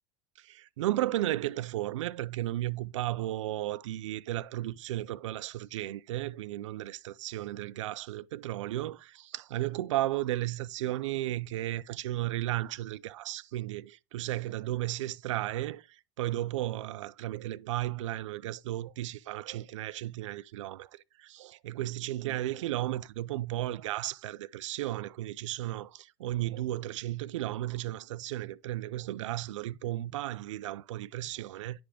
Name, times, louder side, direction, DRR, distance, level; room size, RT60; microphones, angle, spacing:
voice 1, 0.4-31.8, right 15 dB, 90° right, 0.4 m, -34 dB
10.0 x 3.5 x 4.9 m
supercardioid pair, 100°, 15 cm